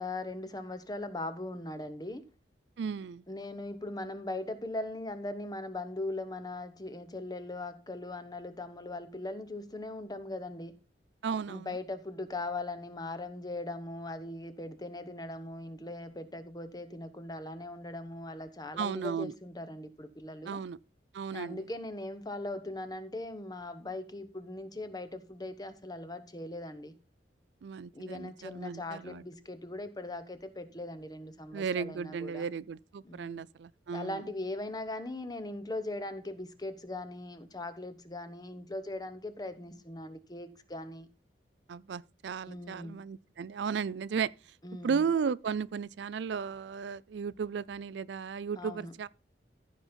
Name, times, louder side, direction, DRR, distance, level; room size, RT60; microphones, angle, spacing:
voice 1, 0.0-2.2 3.3-10.7 11.5-20.6 21.3-26.9 27.9-32.5 33.0-33.4 33.9-41.1 42.5-43.0 44.6-45.1 48.6-48.9, left 2 dB, 20° left, 1.0 m, -40 dB
voice 2, 2.8-3.2 11.2-11.8 18.8-19.3 20.5-20.8 21.1-21.6 27.6-29.2 31.5-34.2 41.7-44.3 44.8-49.1, right 6 dB, 75° right, 0.4 m, -35 dB
14.5 x 5.2 x 4.4 m
head